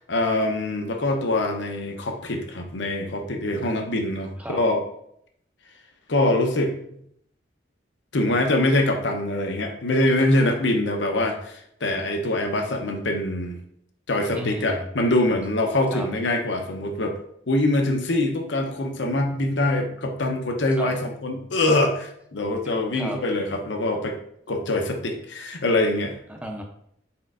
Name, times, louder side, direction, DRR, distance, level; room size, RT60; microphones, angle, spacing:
voice 1, 0.0-4.8 6.1-6.8 8.1-13.6 14.1-17.2 17.5-24.2 24.5-26.2, left 1 dB, 80° left, 3 dB, 0.7 m, -24 dB
voice 2, 14.4-14.9 15.9-16.1 20.8-20.9 22.9-23.2 26.3-26.6, equal, 5° right, 2 dB, 0.5 m, -33 dB
4.3 x 4.3 x 2.5 m, 0.70 s
head